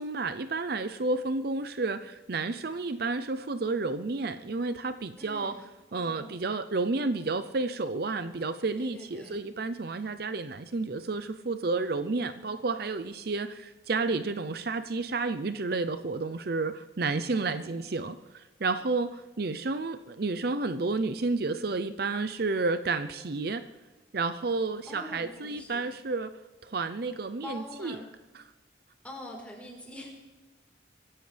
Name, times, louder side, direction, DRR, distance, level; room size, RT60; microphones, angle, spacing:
voice 1, 0.0-5.5 5.9-23.6 24.1-26.3 26.6-28.0 28.3-28.4, right 3 dB, 55° right, 11 dB, 0.6 m, -31 dB
voice 2, 5.2-5.5 5.9-6.4 8.8-9.4 17.2-17.8 24.9-25.9 27.4-28.1 29.0-30.1, left 1 dB, 10° left, -2 dB, 4.2 m, -44 dB
24.5 x 16.0 x 3.4 m, 1.2 s
head